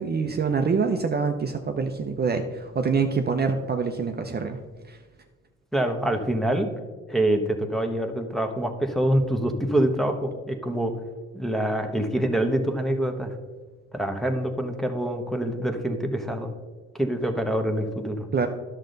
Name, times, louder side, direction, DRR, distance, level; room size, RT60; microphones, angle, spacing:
voice 1, 0.0-4.6 4.9-5.0 18.3-18.5, right 5 dB, 35° right, 5 dB, 0.6 m, -25 dB
voice 2, 5.7-6.7 7.1-10.9 11.3-13.4 13.9-16.5 16.9-18.3, right 1 dB, ahead, 3 dB, 1.0 m, -25 dB
10.5 x 6.5 x 3.9 m, 1.3 s
cardioid pair, 90°, 30 cm